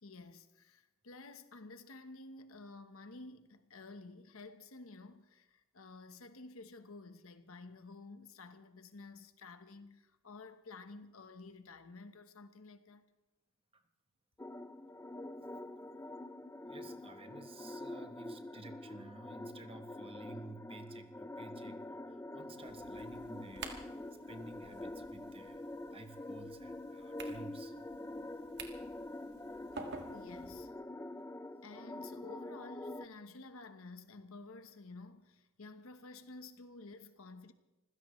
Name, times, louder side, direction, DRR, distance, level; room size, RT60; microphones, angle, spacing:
voice 1, 0.0-13.1 30.1-30.7 31.6-37.5, left 3 dB, 65° left, 1.1 m, -52 dB
sound 1, 14.4-33.1, left 1 dB, 10° left, 0.4 m, -46 dB
voice 2, 16.7-23.9 24.3-27.7, right 3 dB, 25° right, 1.0 m, -53 dB
sound 2, 22.6-30.7, right 4 dB, 50° right, 1.7 m, -52 dB
25.5 x 16.0 x 3.2 m
head